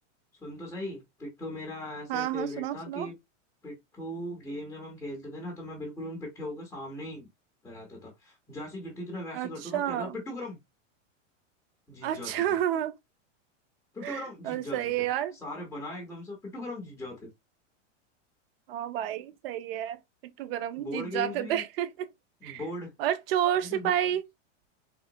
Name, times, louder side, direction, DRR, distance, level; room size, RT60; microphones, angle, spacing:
voice 1, 0.4-3.2 3.6-7.3 7.6-10.6 11.9-12.6 13.9-14.8 15.4-17.3 20.8-21.6 22.4-22.9 23.6-23.9, left 1 dB, 5° left, 0.4 m, -39 dB
voice 2, 2.1-3.1 9.3-10.2 12.0-13.0 14.0-15.3 18.7-20.0 20.4-22.1 22.4-22.6 23.0-24.2, right 11 dB, 50° right, 0.5 m, -30 dB
3.7 x 2.1 x 2.6 m
supercardioid pair, 160°, 37 cm